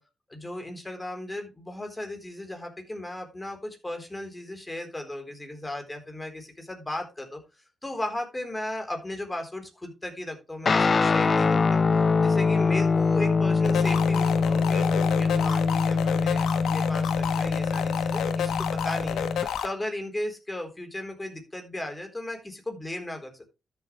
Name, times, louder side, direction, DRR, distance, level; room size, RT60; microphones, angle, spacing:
voice 1, 0.3-7.4 7.8-11.8 12.2-19.3 19.6-23.4, left 1 dB, 20° left, 4 dB, 3.9 m, -36 dB
Guitar, 10.7-19.5, left 4 dB, 45° left, 0.5 m, -24 dB
sound 1, 13.6-19.7, left 8 dB, 90° left, 1.2 m, -30 dB
13.0 x 7.2 x 3.3 m, 0.28 s
cardioid pair, 65°, 0 cm